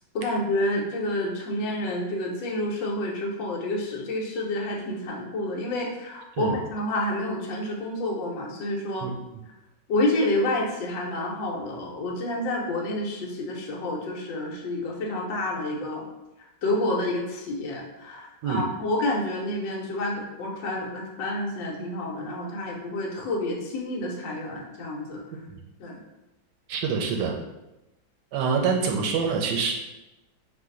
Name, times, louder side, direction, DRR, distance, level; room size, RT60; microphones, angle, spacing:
voice 1, 0.1-9.1 9.9-16.1 16.6-25.2 25.8-26.0, left 1 dB, 80° left, -1 dB, 1.4 m, -29 dB
voice 2, 26.7-27.4 28.3-29.7, right 5 dB, 70° right, 2 dB, 1.1 m, -26 dB
4.0 x 2.6 x 3.8 m, 0.97 s
omnidirectional pair, 2.0 m